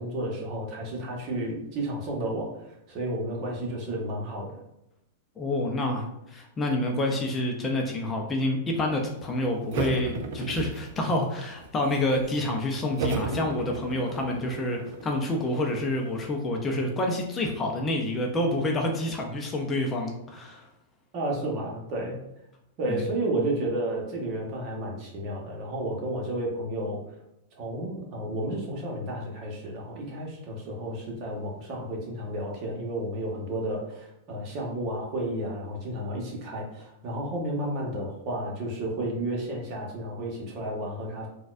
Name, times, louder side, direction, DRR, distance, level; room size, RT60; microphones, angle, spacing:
voice 1, 0.0-4.5 21.1-22.2 22.8-27.0 27.6-41.3, right 1 dB, 45° right, -1 dB, 1.1 m, -32 dB
voice 2, 5.4-20.7 22.9-23.1, left 1 dB, 20° left, 1 dB, 0.5 m, -28 dB
sound 1, 9.7-11.2 11.6-12.3 13.0-16.3, right 3 dB, 60° right, 0.5 m, -34 dB
4.0 x 2.3 x 2.5 m, 0.86 s
hypercardioid pair, 125°, 0 cm